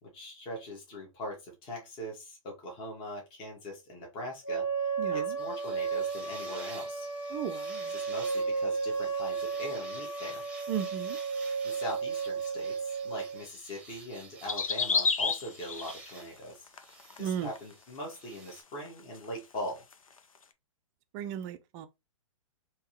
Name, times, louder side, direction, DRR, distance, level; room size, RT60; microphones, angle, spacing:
voice 1, 0.0-7.1 7.9-10.4 11.6-16.7 17.2-19.8, equal, 30° left, 1.4 m, -41 dB
sound 1, 4.4-13.4, right 5 dB, 65° left, 1.0 m, -33 dB
voice 2, 5.0-5.4 7.3-7.9 10.7-11.2 17.2-17.5 21.1-21.9, right 9 dB, 30° right, 0.4 m, -35 dB
sound 2, 5.4-18.6, right 4 dB, 5° right, 0.9 m, -51 dB
sound 3, 14.5-16.2 16.7-17.2 17.6-17.7 18.5-18.6 18.9-19.0 19.9-20.0, left 5 dB, 90° left, 0.5 m, -29 dB
3.6 x 2.8 x 3.0 m
hypercardioid pair, 120°, 17 cm